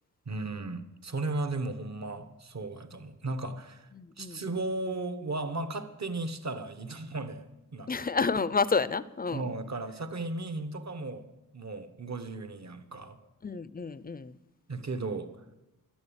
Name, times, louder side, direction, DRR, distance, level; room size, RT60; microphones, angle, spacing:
voice 1, 0.3-3.9 4.2-7.5 7.7-7.9 9.3-13.2 14.7-15.4, right 2 dB, 55° right, 10 dB, 1.2 m, -35 dB
voice 2, 4.0-4.4 7.9-9.5 13.4-14.3, left 4 dB, 25° left, 17 dB, 0.5 m, -30 dB
12.0 x 11.0 x 8.8 m, 0.99 s
wide cardioid pair, 115°, 33 cm